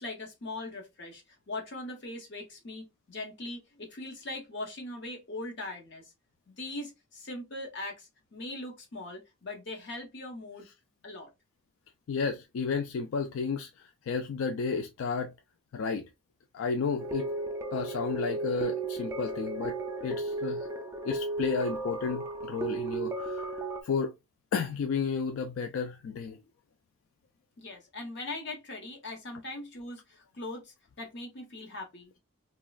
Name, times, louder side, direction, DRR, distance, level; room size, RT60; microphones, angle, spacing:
voice 1, 0.0-6.1 6.5-10.7 11.0-11.3 27.6-32.2, left 2 dB, 60° left, 1.0 m, -40 dB
voice 2, 12.1-13.7 14.1-15.3 15.7-16.1 16.5-17.3 17.7-20.7 21.0-23.4 23.8-24.1 24.5-26.4, left 5 dB, 85° left, 0.3 m, -32 dB
sound 1, 17.0-23.8, right 2 dB, 15° right, 0.3 m, -34 dB
3.1 x 2.3 x 2.3 m
head